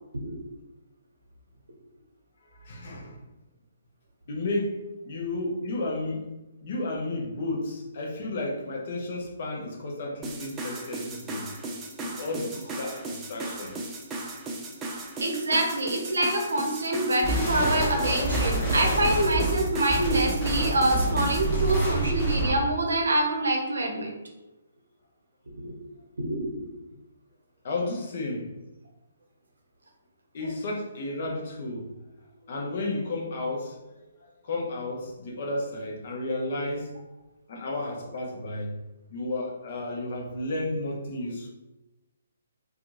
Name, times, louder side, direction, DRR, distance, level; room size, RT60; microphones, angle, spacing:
voice 1, 2.5-3.2 4.3-4.8 5.0-6.3 6.6-11.5 12.0-14.0 27.6-28.5 30.3-31.9 32.4-36.9 37.5-38.7 39.1-41.5, left 2 dB, 45° left, 0 dB, 0.6 m, -32 dB
sound 1, 10.2-21.5, right 2 dB, 15° right, 0.4 m, -36 dB
voice 2, 15.2-24.1 25.6-25.7 26.2-26.5, right 1 dB, 65° right, 1 dB, 0.6 m, -26 dB
sound 2, 17.2-22.7, right 1 dB, 15° left, 0.8 m, -27 dB
2.7 x 2.4 x 2.5 m, 1.0 s
figure-of-eight pair, 130°, 0 cm